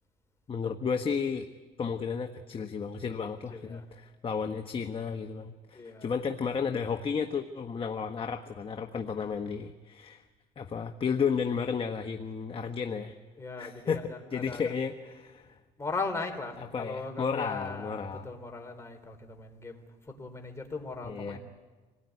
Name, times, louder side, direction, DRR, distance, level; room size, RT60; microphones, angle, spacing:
voice 1, 0.5-1.5 1.8-10.2 10.6-13.2 13.6-14.0 14.3-15.5 16.6-18.3 21.0-21.4, left 6 dB, 30° left, 6 dB, 1.2 m, -33 dB
voice 2, 3.5-3.8 5.7-6.1 9.1-9.3 13.4-14.7 15.8-19.8 20.2-21.4, left 3 dB, 15° left, 3 dB, 3.9 m, -38 dB
27.0 x 18.5 x 9.7 m, 1.3 s
cardioid pair, 110°, 17 cm